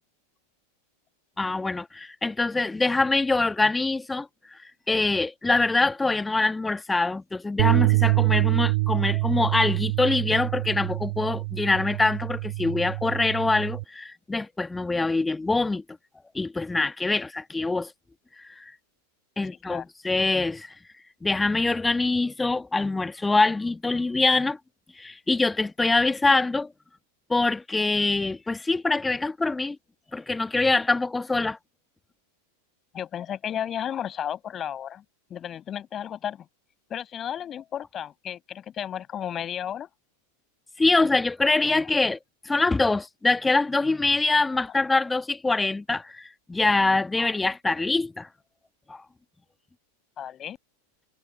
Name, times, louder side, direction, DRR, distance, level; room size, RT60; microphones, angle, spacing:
voice 1, 1.4-4.6 4.9-15.8 16.3-17.9 18.4-18.7 19.4-20.7 21.2-24.6 25.0-26.7 27.3-29.8 30.1-31.6 40.8-42.2 42.5-48.3 48.9-49.0, left 3 dB, 10° left, 1.8 m, -24 dB
sound 1, 7.6-13.8, right 23 dB, 50° right, 3.1 m, -25 dB
voice 2, 32.9-35.0 35.3-36.5 36.9-39.9 50.2-50.6, left 9 dB, 25° left, 7.4 m, -33 dB
figure-of-eight pair, 90°, 0 cm